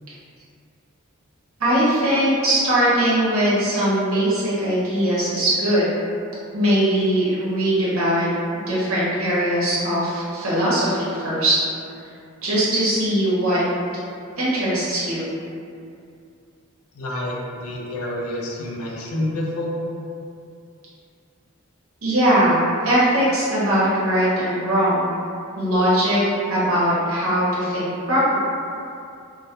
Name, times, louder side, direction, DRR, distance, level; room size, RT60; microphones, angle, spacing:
voice 1, 1.6-5.9 6.5-11.6 12.4-13.6 14.4-15.3 22.0-25.1 25.5-26.2 26.5-28.4, right 1 dB, 80° right, -8 dB, 0.7 m, -20 dB
voice 2, 16.9-19.8, left 1 dB, 90° left, -3 dB, 0.4 m, -28 dB
2.2 x 2.1 x 2.7 m, 2.4 s
head